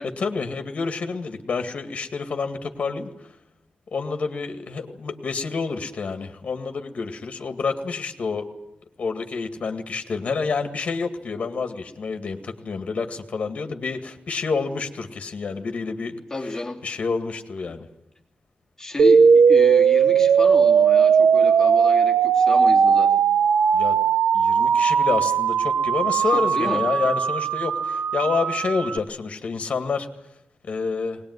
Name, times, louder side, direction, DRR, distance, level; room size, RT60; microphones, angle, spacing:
voice 1, 0.0-3.1 3.9-8.5 9.0-16.2 16.8-17.9 23.7-24.0 24.3-30.1 30.7-31.2, left 4 dB, 50° left, 7 dB, 2.0 m, -28 dB
voice 2, 16.3-16.8 18.8-19.2 19.5-23.1 26.3-26.8, left 2 dB, 15° left, 0 dB, 3.0 m, -30 dB
sound 1, 19.0-29.0, right 6 dB, 80° right, 0.8 m, -18 dB
20.5 x 19.5 x 9.6 m, 0.85 s
wide cardioid pair, 155°, 3 cm